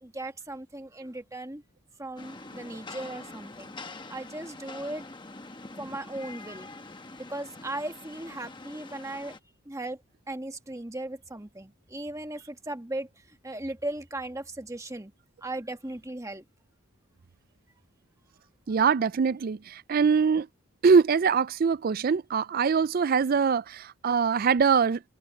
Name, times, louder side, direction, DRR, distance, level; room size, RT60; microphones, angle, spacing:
voice 1, 0.0-1.6 2.0-3.7 4.1-5.0 5.8-6.7 7.2-9.4 9.6-10.0 10.3-15.1 15.4-16.4, right 1 dB, 15° right, 1.3 m, -37 dB
Rain, 2.2-9.4, left 3 dB, 20° left, 1.0 m, -44 dB
voice 2, 18.7-20.5 20.8-25.0, right 5 dB, 40° right, 0.3 m, -23 dB
head